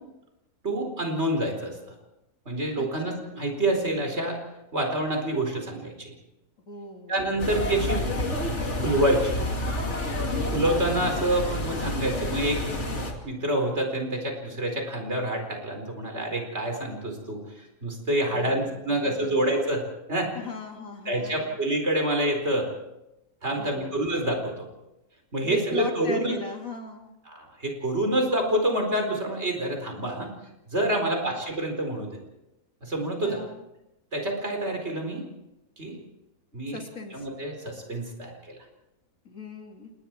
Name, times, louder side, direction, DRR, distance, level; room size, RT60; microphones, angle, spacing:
voice 1, 0.6-1.9 2.4-4.4 4.7-6.1 7.1-8.0 8.7-9.4 10.3-12.6 13.2-20.3 21.1-22.7 23.4-24.7 25.3-26.3 27.3-30.3 30.7-32.1 32.8-33.4 34.1-35.2 35.8-36.0 36.5-36.8 37.1-38.6, right 1 dB, 50° right, 3 dB, 4.8 m, -27 dB
voice 2, 2.8-3.2 6.7-7.6 10.3-10.6 18.3-19.5 20.3-21.6 23.5-24.0 25.4-27.1 31.0-31.4 33.2-33.6 36.7-37.3 39.2-39.9, left 3 dB, 65° left, 2 dB, 3.3 m, -39 dB
sound 1, 7.4-13.1, left 1 dB, 50° left, 2.9 m, -29 dB
29.5 x 19.0 x 4.6 m, 0.92 s
omnidirectional pair, 1.5 m